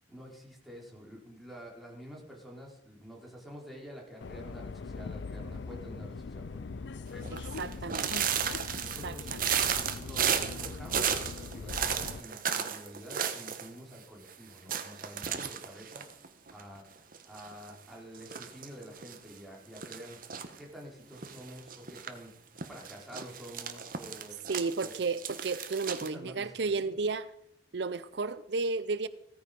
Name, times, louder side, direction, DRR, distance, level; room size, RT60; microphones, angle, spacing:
voice 1, 0.1-8.5 8.8-9.3 10.0-16.2 16.5-16.8 17.2-20.2 20.6-22.3 22.7-24.5 24.8-24.9 26.1-26.9, equal, ahead, 4.6 m, -48 dB
Subway metro underground, 4.2-12.2, left 4 dB, 80° left, 0.5 m, -41 dB
sound 1, 7.2-13.7 13.9-14.0 14.3-14.4 14.7-16.8 17.1-17.7 18.1-19.2 19.8-20.6 21.2-22.1 22.6-26.1, right 8 dB, 50° right, 1.4 m, -34 dB
voice 2, 7.3-8.1 9.0-9.5 24.5-27.3 27.7-29.1, right 4 dB, 70° right, 0.6 m, -33 dB
16.5 x 14.5 x 5.3 m
head